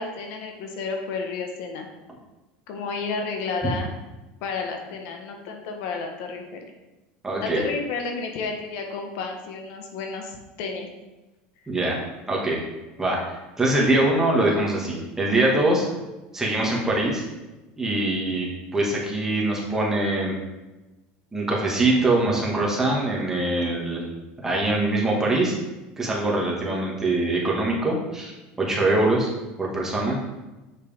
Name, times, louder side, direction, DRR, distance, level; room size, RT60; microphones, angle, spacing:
voice 1, 0.0-1.9 2.7-3.9 4.4-6.7 7.4-10.9, left 4 dB, 65° left, 3 dB, 1.3 m, -31 dB
voice 2, 7.2-7.6 11.7-12.0 12.3-12.6 13.0-13.2 13.6-15.8 16.3-17.2 17.8-20.3 21.3-24.0 24.4-25.5 26.0-28.3 28.6-29.3 29.6-30.2, right 2 dB, 10° right, -3 dB, 2.0 m, -23 dB
7.6 x 6.3 x 3.6 m, 1.1 s
supercardioid pair, 135°, 4 cm